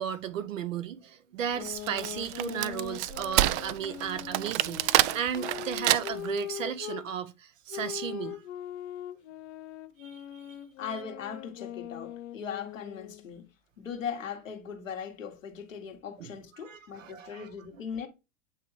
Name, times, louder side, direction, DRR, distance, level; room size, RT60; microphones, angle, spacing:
voice 1, 0.0-8.4 10.0-10.5 16.2-16.3 16.6-17.5, right 8 dB, 85° right, 1.0 m, -35 dB
sound 1, 1.5-7.0 7.7-13.3, left 12 dB, 65° left, 0.8 m, -41 dB
Wood, 1.7-6.4, right 15 dB, 60° right, 0.5 m, -28 dB
voice 2, 10.8-13.5 13.8-18.1, left 7 dB, 90° left, 1.7 m, -39 dB
8.6 x 3.5 x 3.2 m
hypercardioid pair, 100°, 38 cm